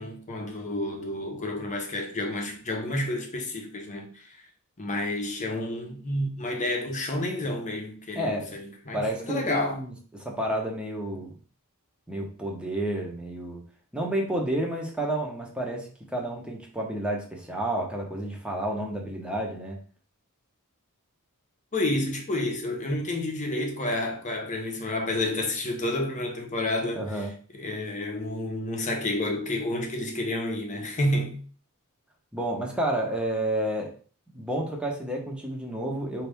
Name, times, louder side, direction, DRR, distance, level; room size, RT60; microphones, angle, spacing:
voice 1, 0.0-4.4 4.8-9.8 21.7-27.3 27.5-31.4, left 1 dB, 35° left, 1.0 m, -30 dB
voice 2, 8.1-8.6 8.9-9.9 10.2-11.3 12.1-13.6 13.9-19.8 26.9-27.3 32.3-33.9 34.3-36.3, right 1 dB, 5° right, 1.0 m, -30 dB
5.0 x 2.9 x 3.5 m
head